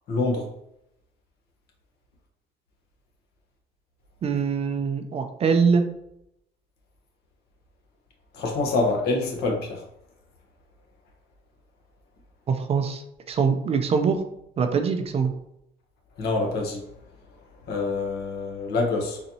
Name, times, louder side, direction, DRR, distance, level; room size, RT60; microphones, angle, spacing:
voice 1, 0.1-0.5 8.3-9.8 16.2-16.8 17.7-19.2, left 3 dB, 70° left, 1 dB, 1.0 m, -26 dB
voice 2, 4.2-5.8 12.5-14.2 14.6-15.3, right 5 dB, 35° right, 7 dB, 0.4 m, -23 dB
4.0 x 2.7 x 2.7 m, 0.80 s
cardioid pair, 110°, 17 cm